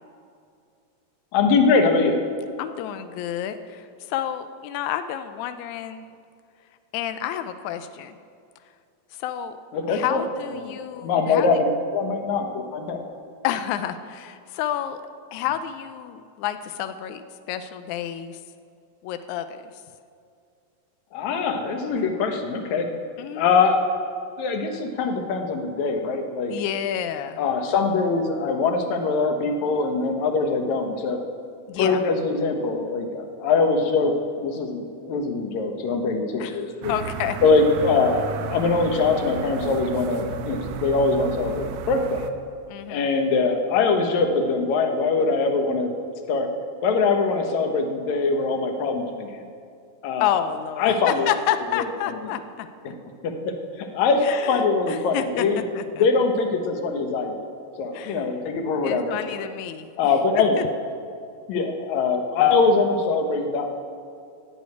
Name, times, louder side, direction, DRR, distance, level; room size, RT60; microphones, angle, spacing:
voice 1, 1.3-2.2 9.7-10.2 10.6-13.0 21.1-22.9 23.4-23.8 24.4-26.5 27.4-31.2 31.8-36.9 37.4-42.3 42.9-45.9 46.3-46.5 46.8-49.4 50.0-50.3 50.8-51.3 51.7-52.3 52.8-53.0 53.2-55.6 56.0-57.3 57.8-59.5 60.0-60.7 61.5-63.7, left 4 dB, 65° left, 4 dB, 2.2 m, -23 dB
voice 2, 2.6-6.0 6.9-8.2 9.2-9.6 9.9-11.5 13.4-15.0 15.3-18.4 19.0-19.6 23.2-23.5 26.5-27.4 31.7-32.0 36.4-36.6 36.9-37.4 42.7-43.1 50.2-52.7 54.2-55.5 55.7-56.0 57.9-58.3 58.8-59.9, left 10 dB, 90° left, 10 dB, 1.6 m, -29 dB
sound 1, 36.8-42.3, right 6 dB, 85° right, 2.4 m, -33 dB
13.5 x 6.4 x 9.4 m, 2.4 s
omnidirectional pair, 4.0 m